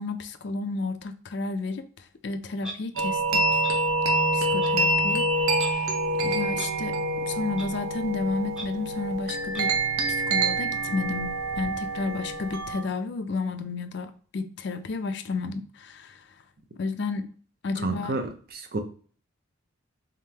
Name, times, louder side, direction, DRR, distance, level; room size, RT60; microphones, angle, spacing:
voice 1, 0.0-3.4 4.3-5.3 5.6-5.9 6.2-9.7 10.1-16.3 16.8-17.3 17.6-18.2, left 3 dB, 55° left, 9 dB, 0.4 m, -32 dB
Clock, 2.6-2.8 3.6-3.7 4.6-4.7 5.6-5.7 6.6-6.7 7.6-7.7 8.5-8.6 9.5-9.6, right 1 dB, 5° right, 0.7 m, -39 dB
sound 1, 3.0-12.8, right 2 dB, 85° right, 0.8 m, -26 dB
voice 2, 17.8-18.8, right 3 dB, 45° right, 6 dB, 0.6 m, -30 dB
3.6 x 3.6 x 2.8 m, 0.43 s
head